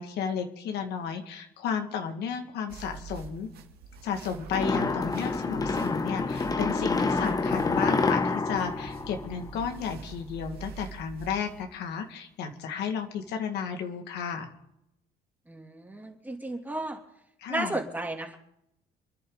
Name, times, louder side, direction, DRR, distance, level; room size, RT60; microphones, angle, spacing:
voice 1, 0.0-3.5 4.0-14.5 17.4-17.8, left 7 dB, 80° left, 4 dB, 2.1 m, -33 dB
sound 1, 2.7-11.6, right 5 dB, 65° right, 2.1 m, -45 dB
sound 2, 4.5-9.9, left 3 dB, 20° left, 1.0 m, -28 dB
voice 2, 15.5-17.0 17.5-18.4, right 2 dB, 10° right, 2 dB, 2.9 m, -34 dB
28.5 x 10.5 x 4.0 m, 0.80 s
cardioid pair, 110°, 17 cm